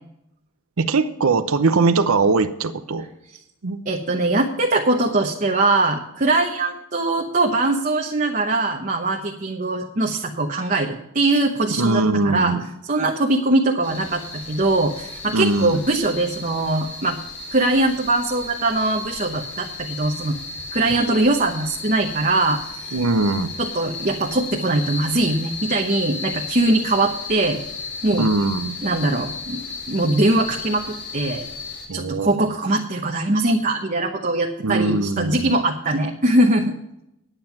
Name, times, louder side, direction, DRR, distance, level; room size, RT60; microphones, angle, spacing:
voice 1, 0.8-3.1 3.6-3.8 11.8-12.7 15.3-15.8 22.9-23.5 28.2-28.7 31.9-32.4 34.6-35.6, right 3 dB, 80° right, 9 dB, 0.7 m, -21 dB
voice 2, 3.9-12.5 12.9-17.2 17.5-20.4 20.7-22.9 23.6-27.6 28.0-28.3 28.8-29.6 29.9-31.5 31.9-36.8, right 2 dB, 40° right, 2 dB, 0.9 m, -21 dB
sound 1, 13.8-31.9, left 4 dB, 55° left, 3.2 m, -34 dB
9.9 x 9.0 x 5.9 m, 0.82 s
head